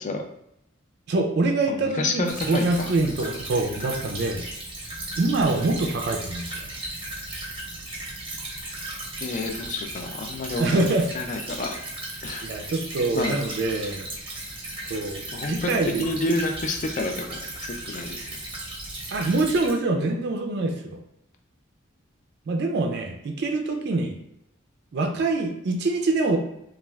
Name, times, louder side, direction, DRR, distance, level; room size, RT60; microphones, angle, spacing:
voice 1, 1.1-4.4 5.2-6.5 10.6-11.1 12.4-14.1 14.9-16.1 19.1-21.0 22.5-24.2 24.9-26.4, right 2 dB, 55° right, 3 dB, 0.3 m, -25 dB
voice 2, 1.7-2.9 9.2-11.8 12.2-12.7 13.1-13.4 13.8-13.9 15.3-15.7 16.0-18.3, left 2 dB, 40° left, 4 dB, 0.3 m, -30 dB
Stream / Trickle dribble, 2.2-19.7, right 2 dB, 25° right, 0.7 m, -36 dB
3.1 x 2.4 x 2.3 m, 0.80 s
head